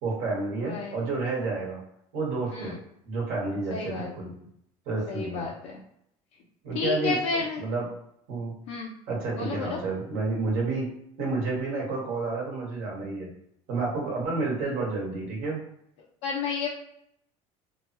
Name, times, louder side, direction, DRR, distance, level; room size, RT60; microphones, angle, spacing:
voice 1, 0.0-1.8 2.1-2.8 3.0-4.3 4.8-5.5 6.6-7.9 8.3-8.5 9.1-10.9 11.2-13.3 13.7-15.6, right 3 dB, 75° right, -3 dB, 1.5 m, -30 dB
voice 2, 0.6-1.0 2.5-2.8 3.7-4.1 5.1-5.8 6.7-7.6 8.7-8.9 9.4-9.8 16.2-16.7, left 5 dB, 75° left, -3 dB, 0.6 m, -31 dB
3.3 x 2.0 x 2.9 m, 0.74 s
supercardioid pair, 110°, 15 cm